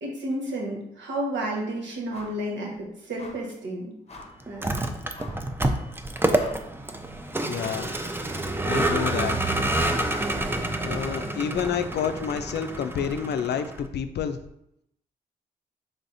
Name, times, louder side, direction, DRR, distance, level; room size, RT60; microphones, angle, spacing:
voice 1, 0.0-3.9 4.5-4.8, right 1 dB, 70° right, -1 dB, 1.2 m, -31 dB
sound 1, 2.1-2.5 2.7-2.8 3.2-3.5 4.1-4.4 5.1-5.5 5.9-6.0 6.3-6.9 7.6-7.9 8.3-11.3, left 2 dB, 35° left, 0.8 m, -46 dB
Vehicle, 4.5-13.9, right 1 dB, 10° right, 0.5 m, -28 dB
voice 2, 7.4-7.9 8.7-9.4 10.8-14.4, left 7 dB, 65° left, 9 dB, 0.4 m, -29 dB
4.0 x 3.4 x 2.6 m, 0.77 s
supercardioid pair, 50°, 19 cm